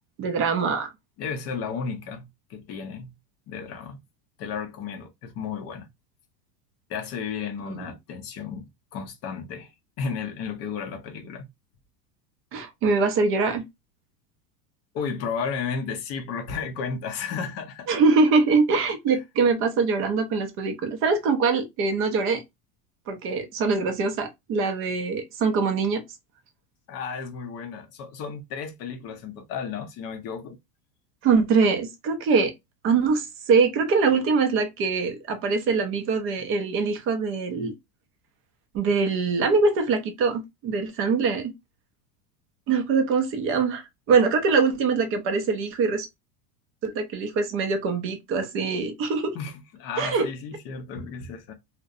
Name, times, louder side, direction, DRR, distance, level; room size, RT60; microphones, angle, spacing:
voice 1, 0.2-0.9 7.7-7.8 12.5-13.6 17.9-22.4 23.1-26.0 31.2-32.5 32.8-37.7 38.7-41.5 42.7-43.8 44.1-46.1 46.8-49.4 50.0-50.3, right 4 dB, 30° right, 0.3 m, -23 dB
voice 2, 1.2-3.1 3.5-4.0 4.4-5.9 6.9-8.7 8.9-9.7 10.0-11.5 14.9-17.9 19.1-19.2 26.9-30.6 49.3-51.5, left 6 dB, 35° left, 0.4 m, -33 dB
2.6 x 2.1 x 2.4 m
supercardioid pair, 130°, 50 cm